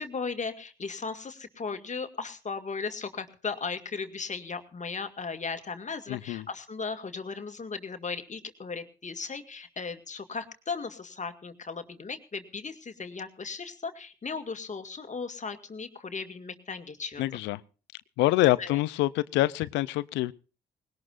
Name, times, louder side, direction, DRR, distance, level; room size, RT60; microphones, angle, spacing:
voice 1, 0.0-17.2 18.6-18.8, left 4 dB, 40° left, 2.1 m, -36 dB
voice 2, 6.1-6.5 17.2-17.6 18.2-20.3, left 17 dB, 85° left, 0.6 m, -26 dB
20.0 x 18.0 x 2.5 m
hypercardioid pair, 45°, 18 cm